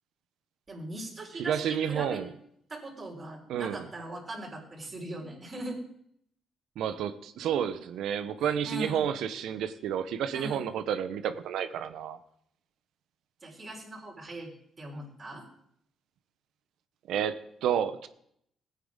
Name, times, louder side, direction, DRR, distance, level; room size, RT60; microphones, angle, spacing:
voice 1, 0.7-2.2 2.7-5.8 8.6-9.0 10.3-10.6 13.4-14.5 14.8-15.4, right 1 dB, 35° right, -3 dB, 4.1 m, -40 dB
voice 2, 1.4-2.3 3.5-3.9 6.8-12.2 17.1-18.1, right 9 dB, 80° right, 11 dB, 0.7 m, -30 dB
16.5 x 9.3 x 3.7 m, 0.71 s
cardioid pair, 90°, 0 cm